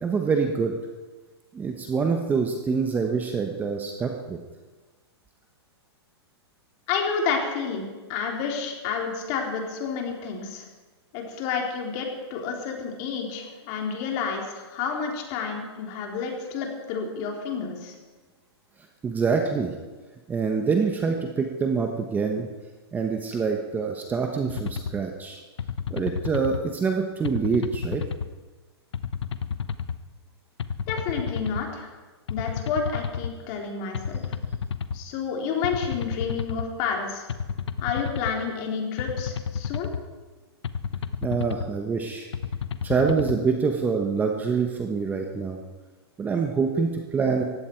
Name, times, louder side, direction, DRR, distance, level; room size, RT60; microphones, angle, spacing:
voice 1, 0.0-0.7 1.5-4.4 19.0-19.7 20.3-22.5 22.9-25.4 25.9-28.0 41.2-42.3 42.8-45.6 46.2-47.4, right 5 dB, 10° right, 3 dB, 1.1 m, -25 dB
voice 2, 6.9-10.7 11.1-18.0 30.9-31.9 32.3-34.2 34.9-37.3 37.8-39.9, left 5 dB, 35° left, 1 dB, 3.5 m, -30 dB
sound 1, 24.5-24.9 25.6-26.6 27.2-28.3 28.9-30.0 30.6-31.6 32.3-33.3 33.9-35.0 35.6-36.7 37.3-38.3 39.0-40.0 40.6-41.7 42.3-43.4, left 6 dB, 90° left, 1.0 m, -31 dB
19.0 x 15.5 x 4.6 m, 1.3 s
hypercardioid pair, 150°, 14 cm